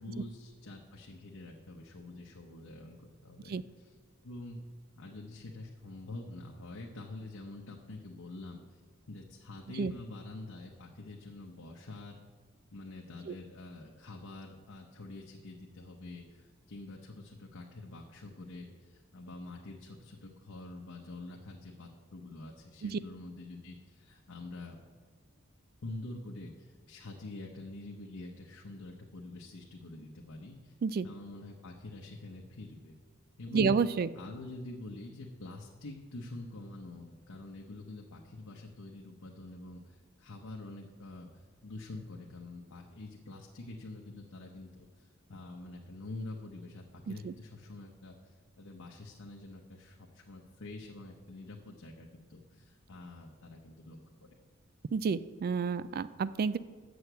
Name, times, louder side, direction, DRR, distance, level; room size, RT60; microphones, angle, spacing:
voice 1, 0.0-3.9 4.2-4.6 5.0-8.8 9.1-12.2 12.7-24.8 25.8-30.7 31.0-33.0 33.4-33.8 34.1-54.3, left 2 dB, 85° left, 0 dB, 0.9 m, -46 dB
voice 2, 33.5-34.1 47.1-47.3 54.9-56.6, right 5 dB, 45° right, 17 dB, 0.3 m, -30 dB
7.0 x 6.5 x 7.9 m, 1.5 s
head